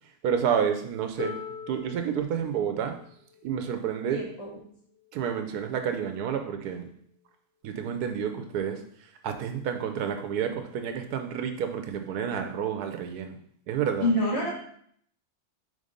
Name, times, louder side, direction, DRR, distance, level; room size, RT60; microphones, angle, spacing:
voice 1, 0.2-1.4 1.7-3.0 3.4-4.2 5.1-6.9 7.6-8.8 9.2-13.3 13.7-14.1, right 8 dB, 80° right, 6 dB, 1.2 m, -29 dB
Harp, 1.2-7.0 8.0-8.1, left 4 dB, 65° left, 2.0 m, -44 dB
voice 2, 4.1-4.6 14.0-14.5, left 1 dB, 40° left, -5 dB, 2.2 m, -27 dB
5.3 x 3.6 x 5.1 m, 0.64 s
omnidirectional pair, 1.7 m